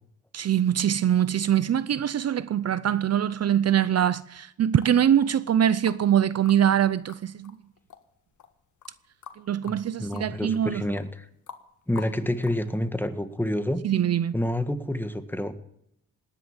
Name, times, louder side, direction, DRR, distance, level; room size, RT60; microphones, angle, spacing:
voice 1, 0.3-7.5 9.5-10.8 13.8-14.3, right 10 dB, 55° right, 0.6 m, -23 dB
sound 1, 4.8-6.1 6.4-12.7, left 7 dB, 70° left, 1.8 m, -46 dB
voice 2, 9.6-11.3 11.9-13.8 14.3-15.5, left 1 dB, 5° left, 1.6 m, -28 dB
18.5 x 9.9 x 7.3 m
cardioid pair, 85°, 31 cm